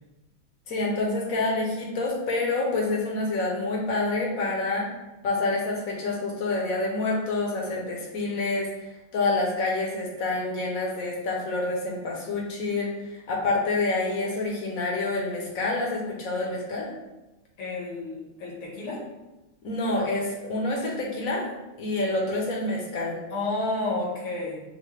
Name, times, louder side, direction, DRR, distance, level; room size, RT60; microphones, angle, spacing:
voice 1, 0.7-4.9 5.2-8.7 9.1-16.9 19.6-21.4 21.8-23.2, left 2 dB, 60° left, -2 dB, 0.9 m, -27 dB
voice 2, 17.6-19.0 23.3-24.6, left 2 dB, 85° left, -5 dB, 2.3 m, -31 dB
6.4 x 2.2 x 3.2 m, 1.0 s
omnidirectional pair, 2.4 m